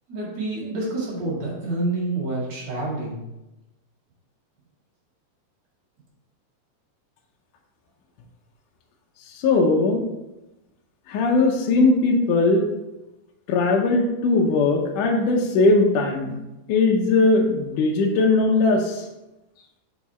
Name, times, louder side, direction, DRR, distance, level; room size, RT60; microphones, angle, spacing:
voice 1, 0.1-3.2, right 2 dB, 50° right, -6 dB, 2.8 m, -28 dB
voice 2, 9.4-10.0 11.1-12.7 13.5-16.4 16.7-19.0, left 3 dB, 75° left, 1 dB, 1.9 m, -19 dB
5.9 x 4.7 x 4.2 m, 0.98 s
omnidirectional pair, 4.4 m